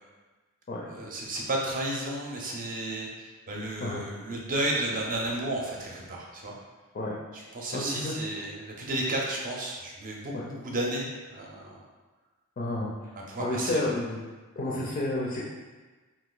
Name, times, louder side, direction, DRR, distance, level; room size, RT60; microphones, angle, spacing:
voice 1, 0.9-6.5 7.3-11.8 13.3-13.9 14.7-14.9, right 1 dB, 40° right, -2 dB, 0.6 m, -33 dB
voice 2, 7.7-8.1 10.3-10.4 12.6-12.9 13.4-14.2 14.6-15.4, left 2 dB, 40° left, -4 dB, 0.5 m, -30 dB
2.8 x 2.6 x 3.8 m, 1.3 s
head